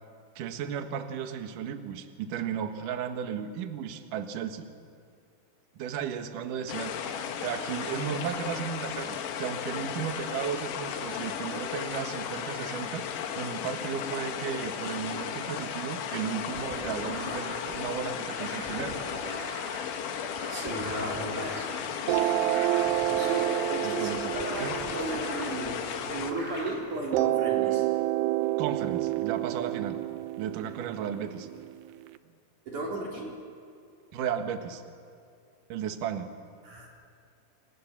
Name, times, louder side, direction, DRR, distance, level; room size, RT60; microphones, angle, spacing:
voice 1, 0.4-4.7 5.8-19.0 23.8-24.3 24.6-24.7 28.6-30.0 30.4-31.5 34.1-34.8 35.7-36.3, right 8 dB, 60° right, 6 dB, 2.4 m, -35 dB
sound 1, 6.7-26.3, left 8 dB, 75° left, 3.9 m, -35 dB
sound 2, 16.5-26.7, equal, 5° left, 4.7 m, -41 dB
voice 2, 20.5-21.7 22.1-22.3 23.1-27.8 32.7-33.3 36.6-36.9, right 2 dB, 40° right, -2 dB, 5.1 m, -36 dB
sound 3, 22.1-26.5 27.1-32.1, right 16 dB, 80° right, 2.4 m, -29 dB
29.5 x 26.5 x 7.4 m, 2.4 s
omnidirectional pair, 5.6 m